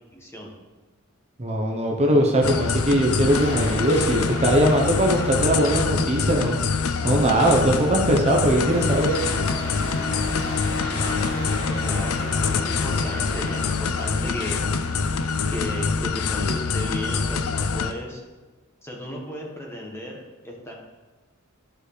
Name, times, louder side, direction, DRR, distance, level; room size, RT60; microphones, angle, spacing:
voice 1, 0.1-0.5 10.9-14.6 15.5-18.2 18.8-20.7, equal, 10° left, -1 dB, 1.4 m, -35 dB
voice 2, 1.4-6.6 7.0-9.2, right 1 dB, 30° right, 0 dB, 0.9 m, -20 dB
sound 1, 2.4-17.9, left 5 dB, 85° left, 0.5 m, -25 dB
sound 2, 3.3-15.5, left 1 dB, 60° left, 1.7 m, -34 dB
12.5 x 4.9 x 3.3 m, 1.3 s
head